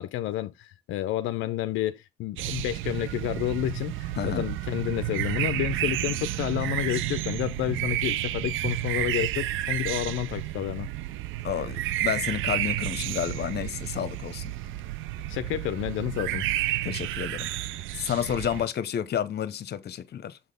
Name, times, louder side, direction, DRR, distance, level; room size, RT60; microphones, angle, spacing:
voice 1, 0.0-10.9 15.3-16.5, left 14 dB, 85° left, 0.4 m, -30 dB
sound 1, 2.4-18.7, right 15 dB, 85° right, 0.4 m, -31 dB
voice 2, 4.2-4.5 11.4-14.5 16.8-17.7 17.9-20.4, left 9 dB, 55° left, 0.8 m, -30 dB
7.2 x 4.1 x 3.4 m
cardioid pair, 90°, 20 cm